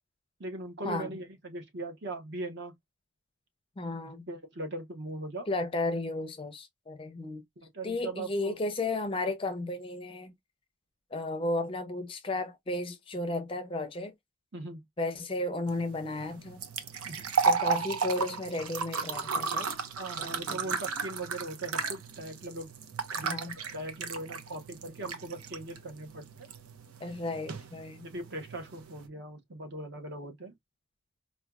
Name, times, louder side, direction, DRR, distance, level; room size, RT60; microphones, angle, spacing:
voice 1, 0.4-2.7 4.3-5.5 7.6-8.6 14.5-14.8 17.0-17.3 20.0-22.7 23.1-26.5 28.0-30.5, right 2 dB, 50° right, 0.9 m, -40 dB
voice 2, 3.8-4.3 5.5-7.4 7.8-10.3 11.1-14.1 15.0-16.6 17.4-19.7 20.2-20.7 23.2-23.5 27.0-28.1, left 2 dB, 25° left, 0.5 m, -34 dB
sound 1, 15.7-29.1, right 5 dB, 85° right, 0.7 m, -34 dB
4.3 x 2.2 x 2.3 m
head